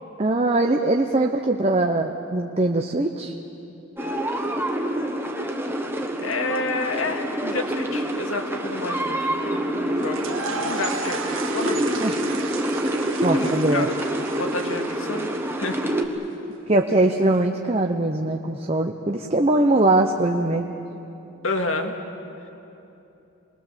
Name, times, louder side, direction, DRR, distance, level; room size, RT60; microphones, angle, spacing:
voice 1, 0.2-3.3 12.0-12.1 13.2-13.9 16.7-20.7, right 2 dB, 30° right, 3 dB, 0.8 m, -21 dB
sound 1, 4.0-16.1, right 1 dB, 10° right, 1.3 m, -27 dB
voice 2, 6.2-12.1 13.3-13.9 14.4-15.3 15.6-16.0 21.4-22.0, left 2 dB, 75° left, 4 dB, 2.0 m, -30 dB
sound 2, 10.0-16.0, right 4 dB, 70° right, 1.8 m, -34 dB
27.5 x 20.5 x 7.4 m, 2.9 s
head